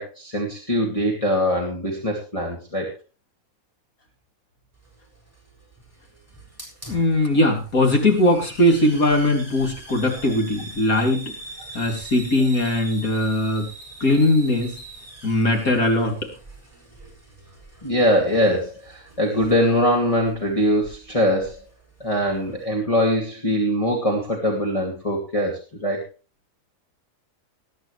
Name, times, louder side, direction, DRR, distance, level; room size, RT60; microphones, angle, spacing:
voice 1, 0.0-2.9 17.8-21.6 22.0-26.0, equal, 25° left, 0 dB, 2.8 m, -22 dB
Hiss, 4.7-22.7, right 2 dB, 10° right, 7.3 m, -43 dB
voice 2, 6.9-11.2 11.7-13.7 14.0-14.8 15.2-16.2, left 1 dB, 80° left, 2 dB, 3.8 m, -20 dB
20.5 x 10.0 x 3.3 m, 0.33 s
omnidirectional pair, 1.5 m